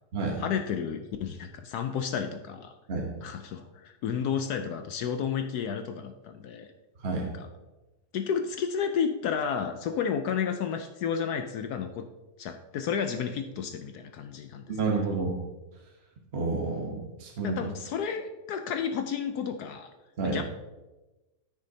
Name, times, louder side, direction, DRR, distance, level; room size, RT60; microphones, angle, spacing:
voice 1, 0.4-2.7 3.2-6.7 7.4-7.5 8.1-12.1 12.4-14.6 17.4-19.9 20.2-20.4, left 7 dB, 70° left, 7 dB, 1.1 m, -31 dB
voice 2, 14.7-15.4 16.3-17.6 20.2-20.4, right 4 dB, 40° right, 0 dB, 1.2 m, -29 dB
13.0 x 6.3 x 2.8 m, 1.1 s
omnidirectional pair, 1.8 m